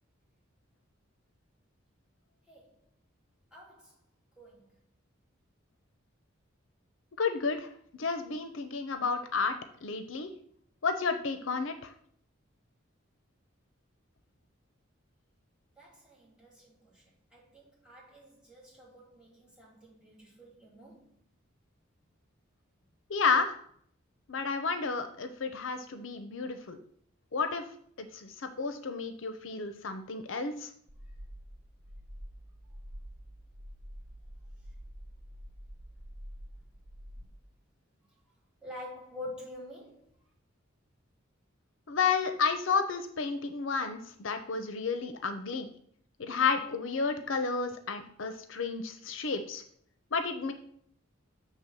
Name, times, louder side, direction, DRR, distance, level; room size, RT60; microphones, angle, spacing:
voice 1, 3.5-3.9 4.4-4.6 15.8-17.0 17.3-21.1 38.6-40.1, left 1 dB, 5° right, 2.4 m, -47 dB
voice 2, 7.2-7.7 8.0-10.3 10.8-11.9 23.1-23.5 24.3-26.8 27.3-27.6 28.0-30.7 41.9-45.7 46.2-49.6 50.1-50.5, left 5 dB, 70° left, 0.6 m, -31 dB
sound 1, 30.9-37.3, equal, 35° right, 0.7 m, -47 dB
7.3 x 3.4 x 6.0 m
head